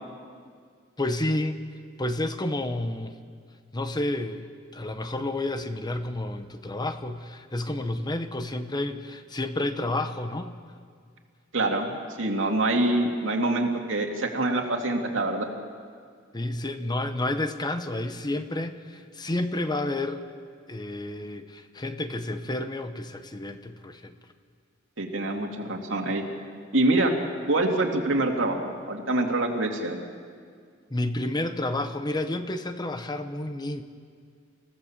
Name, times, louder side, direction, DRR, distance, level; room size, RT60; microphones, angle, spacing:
voice 1, 1.0-1.6 2.0-3.1 3.7-4.4 4.7-10.5 16.3-20.2 20.7-24.1 30.9-33.8, left 1 dB, 20° left, 9 dB, 0.9 m, -30 dB
voice 2, 11.5-15.5 25.0-26.2 26.7-27.1 27.5-30.0, right 2 dB, 70° right, 2 dB, 2.6 m, -25 dB
27.5 x 16.5 x 7.4 m, 2.1 s
head